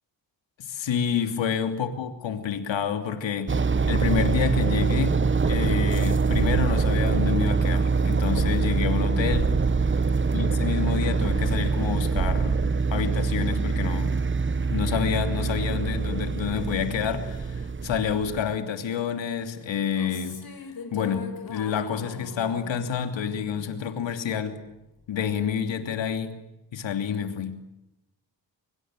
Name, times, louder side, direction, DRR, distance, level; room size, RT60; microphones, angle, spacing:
voice 1, 0.6-9.5 10.3-12.6 12.9-14.1 14.7-20.5 20.9-24.6 25.1-26.3 26.7-27.6, left 7 dB, 80° left, 7 dB, 3.0 m, -28 dB
sound 1, 3.5-18.5, right 4 dB, 25° right, 1.0 m, -24 dB
sound 2, 11.2-12.7, right 6 dB, 45° right, 1.5 m, -34 dB
sound 3, 19.8-24.3, left 5 dB, 50° left, 4.8 m, -42 dB
25.0 x 24.0 x 9.1 m, 0.93 s
cardioid pair, 60°, 44 cm